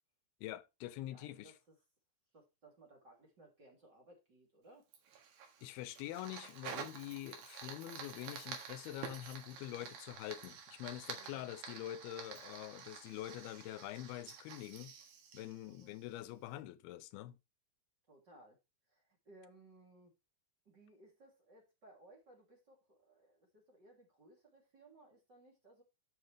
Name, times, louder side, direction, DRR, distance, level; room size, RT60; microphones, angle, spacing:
voice 1, 0.4-1.5 5.6-14.9 15.3-17.4, left 14 dB, 90° left, 2.6 m, -45 dB
voice 2, 1.0-1.7 2.3-4.9 11.1-11.5 15.6-15.9 18.1-18.6 18.9-20.1 20.6-25.8, right 2 dB, 30° right, 3.0 m, -62 dB
Fire, 4.9-16.3, right 7 dB, 70° right, 3.4 m, -50 dB
11.5 x 6.8 x 3.3 m
omnidirectional pair, 4.4 m